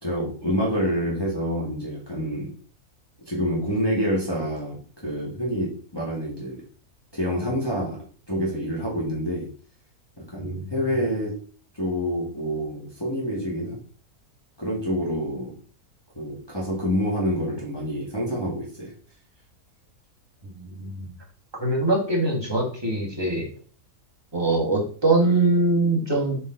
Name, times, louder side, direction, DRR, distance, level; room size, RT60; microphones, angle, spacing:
voice 1, 0.0-2.5 3.3-6.6 7.1-8.0 8.3-9.5 10.3-11.4 11.7-13.8 14.6-15.6 16.2-18.9, equal, 15° left, -5 dB, 1.8 m, -27 dB
voice 2, 20.4-21.1 21.6-23.5 24.3-26.4, right 2 dB, 15° right, -2 dB, 1.9 m, -23 dB
6.9 x 4.2 x 3.9 m, 0.42 s
omnidirectional pair, 1.5 m